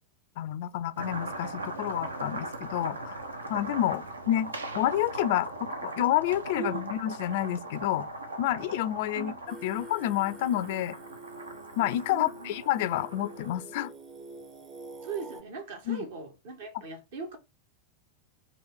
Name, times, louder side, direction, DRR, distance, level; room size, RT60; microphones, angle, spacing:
voice 1, 0.4-3.2 3.5-8.1 8.4-11.0 11.8-13.9 15.9-16.0, left 13 dB, 50° left, 0.3 m, -29 dB
sound 1, 1.0-13.8, right 2 dB, 75° right, 0.7 m, -39 dB
Singing, 9.5-15.4, right 2 dB, 25° right, 0.7 m, -46 dB
voice 2, 12.1-12.5 15.0-17.4, right 4 dB, 55° right, 1.3 m, -38 dB
3.9 x 2.8 x 4.4 m
figure-of-eight pair, 90°, 0 cm